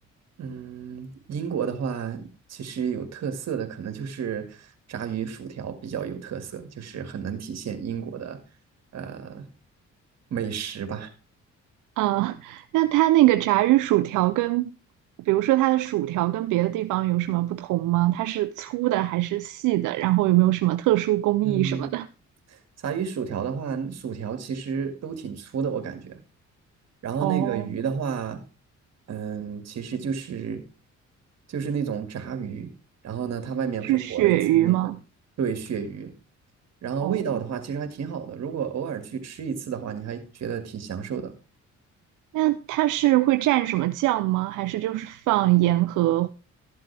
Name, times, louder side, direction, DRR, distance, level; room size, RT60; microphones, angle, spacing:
voice 1, 0.4-8.4 8.9-9.5 10.3-11.1 21.4-21.9 22.5-26.2 27.0-28.4 29.1-30.6 31.5-32.7 33.0-34.9 35.4-36.1 36.8-41.3, right 7 dB, 60° right, 2.0 m, -31 dB
voice 2, 12.0-14.7 15.2-22.1 27.2-27.7 33.8-35.0 37.0-37.2 42.3-46.3, right 16 dB, 85° right, 0.5 m, -22 dB
13.0 x 7.7 x 3.4 m
cardioid pair, 90°, 30 cm